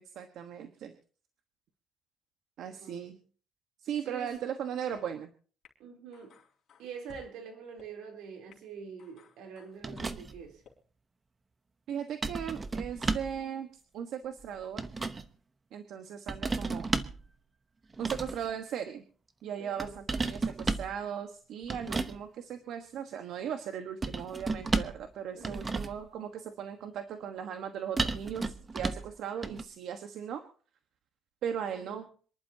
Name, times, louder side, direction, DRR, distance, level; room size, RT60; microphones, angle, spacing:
voice 1, 0.1-1.0 2.6-3.2 3.8-5.3 11.9-14.8 15.7-16.9 18.0-19.0 19.4-30.4 31.4-32.0, right 8 dB, 70° right, 1.3 m, -38 dB
voice 2, 2.8-3.2 4.1-4.3 5.8-6.3 6.8-10.6 19.6-20.0 25.3-25.7 31.7-32.1, right 6 dB, 90° right, 3.5 m, -45 dB
sound 1, 4.3-4.4 4.9-5.0 5.6-5.7 6.1-7.3 7.8-7.9 8.5-8.6 9.0-10.1 10.6-10.7, left 6 dB, 55° left, 3.8 m, -56 dB
sound 2, 9.8-10.5 12.2-13.4 14.4-15.3 16.3-17.2 17.9-18.5 19.8-20.9 21.7-22.2 24.0-25.1 25.4-26.1 28.0-29.1 29.4-29.6, right 3 dB, 25° right, 0.9 m, -33 dB
27.0 x 11.0 x 2.8 m
cardioid pair, 130°, 0 cm